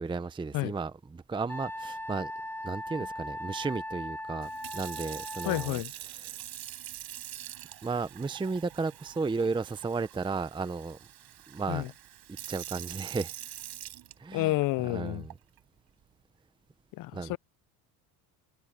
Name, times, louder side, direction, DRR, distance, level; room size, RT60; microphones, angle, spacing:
voice 1, 0.0-2.3 2.6-6.4 7.8-11.0 11.5-11.9 12.5-13.3 14.2-15.3 17.1-17.4, right 4 dB, 10° right, 0.7 m, -34 dB
Wind instrument woodwind instrument, 1.5-5.7, left 1 dB, 5° left, 2.0 m, -39 dB
Sink (filling or washing) / Fill (with liquid), 4.4-14.6 15.3-15.6, right 13 dB, 60° right, 7.6 m, -44 dB
voice 2, 5.5-5.9 11.7-11.9 14.3-15.2 17.0-17.4, left 18 dB, 50° left, 0.5 m, -30 dB
cardioid pair, 115°, 42 cm